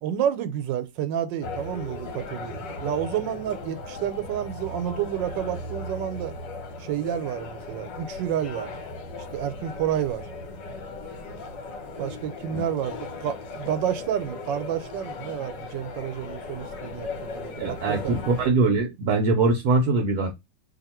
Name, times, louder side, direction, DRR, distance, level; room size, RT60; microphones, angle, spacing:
voice 1, 0.0-6.4 6.8-8.7 9.2-10.3 12.0-18.2, right 10 dB, 85° right, 1.3 m, -30 dB
sound 1, 1.4-18.5, left 3 dB, 75° left, 1.6 m, -37 dB
voice 2, 17.6-20.3, right 3 dB, 65° right, 1.1 m, -22 dB
2.8 x 2.8 x 4.2 m
omnidirectional pair, 1.9 m